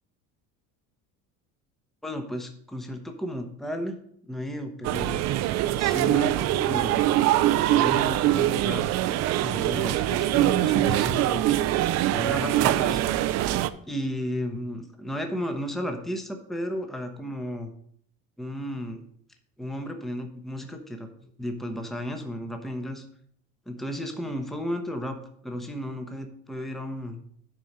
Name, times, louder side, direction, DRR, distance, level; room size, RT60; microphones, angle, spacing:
voice 1, 2.0-4.0 4.2-5.2 5.8-7.1 7.7-8.8 9.4-11.4 12.1-13.0 13.9-17.7 18.4-19.0 19.6-23.0 23.7-25.2 25.4-27.2, equal, ahead, 4 dB, 0.9 m, -33 dB
sound 1, 4.8-13.7, right 13 dB, 55° right, 0.6 m, -23 dB
10.5 x 4.6 x 5.5 m, 0.64 s
cardioid pair, 140°, 31 cm